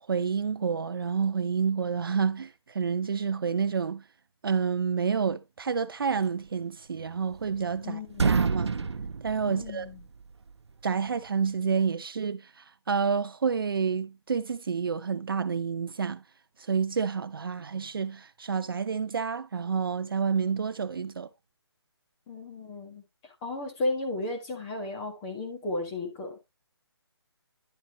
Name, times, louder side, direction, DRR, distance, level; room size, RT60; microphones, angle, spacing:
voice 1, 0.1-4.0 4.4-8.7 9.2-9.9 10.8-16.2 16.6-21.3, right 6 dB, 55° right, 0.6 m, -29 dB
sound 1, 7.0-7.8 8.1-10.2, right 5 dB, 75° right, 0.9 m, -28 dB
voice 2, 7.8-8.3 9.4-10.0 22.3-26.4, left 2 dB, 15° left, 1.6 m, -34 dB
11.0 x 7.2 x 2.9 m
hypercardioid pair, 170°, 14 cm